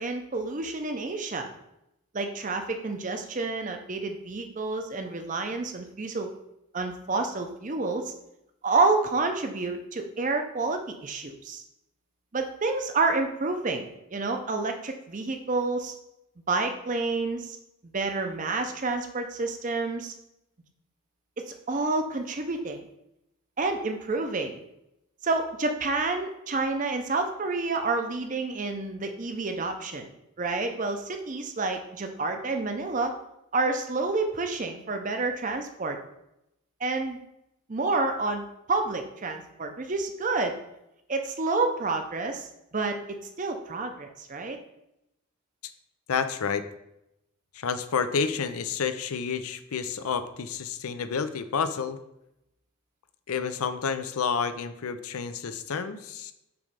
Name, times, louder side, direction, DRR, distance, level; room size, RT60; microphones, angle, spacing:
voice 1, 0.0-1.5 2.1-6.3 6.7-8.1 8.6-11.6 12.3-15.9 16.5-17.6 17.8-20.1 21.4-22.8 23.6-24.6 25.2-30.1 30.4-33.1 33.5-36.0 36.8-37.2 37.7-40.5 41.1-44.6, right 3 dB, 35° right, 5 dB, 0.6 m, -29 dB
voice 2, 46.1-46.7 47.5-52.0 53.3-56.3, left 6 dB, 80° left, 11 dB, 0.5 m, -29 dB
6.9 x 3.2 x 5.1 m, 0.85 s
head